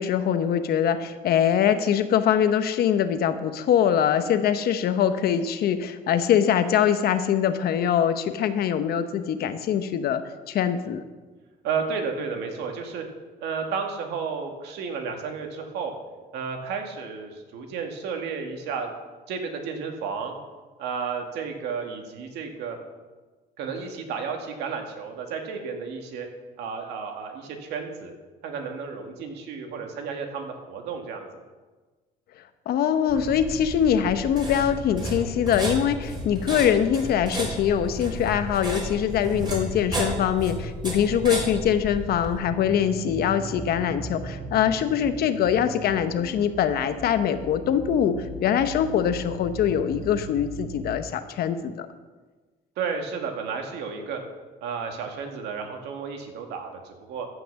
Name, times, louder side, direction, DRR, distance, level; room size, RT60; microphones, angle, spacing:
voice 1, 0.0-10.2 10.5-11.0 32.7-51.9, left 9 dB, 65° left, 10 dB, 1.0 m, -23 dB
voice 2, 11.6-13.0 13.4-15.9 16.3-18.9 19.3-20.4 20.8-22.8 23.6-26.3 26.6-28.1 28.4-31.3 52.8-54.2 54.6-57.3, right 5 dB, 85° right, 3 dB, 2.0 m, -32 dB
sound 1, 33.1-42.4, equal, 25° right, 4.4 m, -33 dB
sound 2, 42.3-51.0, right 2 dB, 60° right, 3.2 m, -38 dB
14.5 x 6.0 x 7.1 m, 1.3 s
cardioid pair, 110°, 17 cm